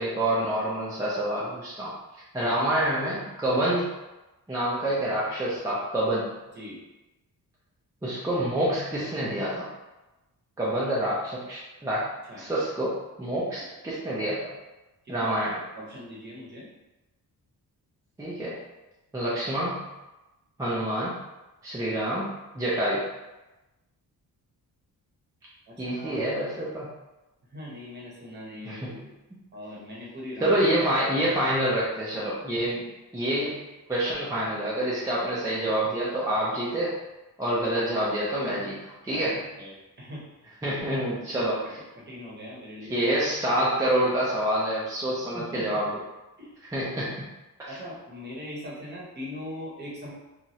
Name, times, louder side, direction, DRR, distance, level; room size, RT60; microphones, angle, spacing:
voice 1, 0.0-1.9 2.3-3.9 4.5-6.3 8.0-9.7 10.6-12.1 12.4-14.4 15.1-15.6 18.2-18.6 19.1-19.9 20.6-21.1 21.6-23.1 25.8-26.9 28.7-29.0 30.4-32.9 33.1-33.6 33.9-37.0 37.4-39.4 40.6-41.8 42.9-45.9 46.7-47.3 47.6-47.7, right 1 dB, 10° right, -8 dB, 0.3 m, -27 dB
voice 2, 15.7-16.7 25.7-26.3 27.5-29.1 29.5-30.5 39.1-40.2 40.6-40.8 41.3-43.0 45.3-45.9 46.4-46.5 47.6-50.1, left 1 dB, 30° right, -5 dB, 0.8 m, -41 dB
3.0 x 2.3 x 2.7 m, 1.1 s
wide cardioid pair, 165°, 36 cm